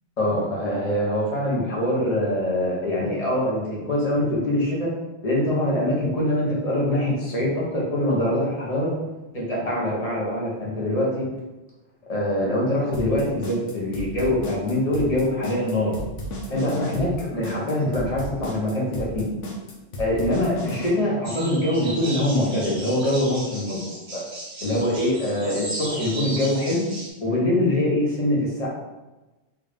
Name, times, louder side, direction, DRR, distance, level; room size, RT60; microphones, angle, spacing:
voice 1, 0.2-4.9 5.2-8.9 9.3-11.3 12.1-16.0 16.5-19.2 20.0-23.8 24.1-24.2 24.6-26.9 27.2-28.7, left 1 dB, 35° left, -5 dB, 1.0 m, -24 dB
sound 1, 12.9-20.9, equal, 90° left, 1.1 m, -33 dB
sound 2, 21.2-27.1, right 1 dB, 65° right, 1.3 m, -36 dB
3.4 x 2.6 x 3.3 m, 1.1 s
omnidirectional pair, 1.2 m